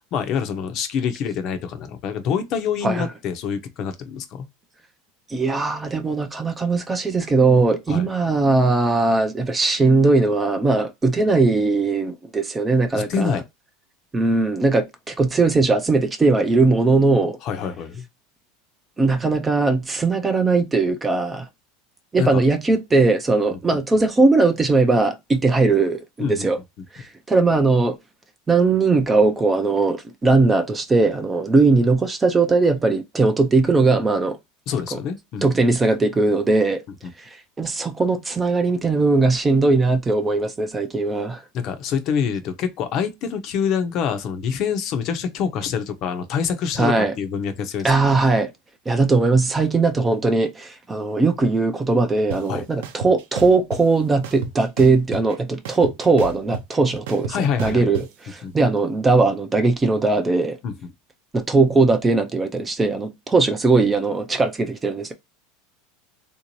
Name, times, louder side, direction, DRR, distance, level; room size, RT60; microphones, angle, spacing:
voice 1, 0.1-4.5 7.9-8.1 12.9-13.4 17.4-18.0 22.2-22.4 23.5-23.6 26.2-26.5 34.7-35.4 41.5-48.2 52.5-52.7 57.3-57.9 58.4-58.5 60.6-60.7, left 7 dB, 40° left, 0.6 m, -26 dB
voice 2, 5.3-13.4 14.1-17.4 19.0-21.5 22.1-26.6 26.9-28.0 28.5-34.4 34.9-35.0 35.4-36.8 37.2-37.3 37.6-41.4 46.8-47.1 47.8-48.5 48.9-60.6 61.3-65.1, right 3 dB, 15° right, 0.4 m, -19 dB
sound 1, 52.3-52.4 52.8-53.8 54.2-55.3 55.7-58.1, right 6 dB, 80° right, 0.7 m, -31 dB
3.6 x 2.6 x 2.9 m
supercardioid pair, 160°, 0 cm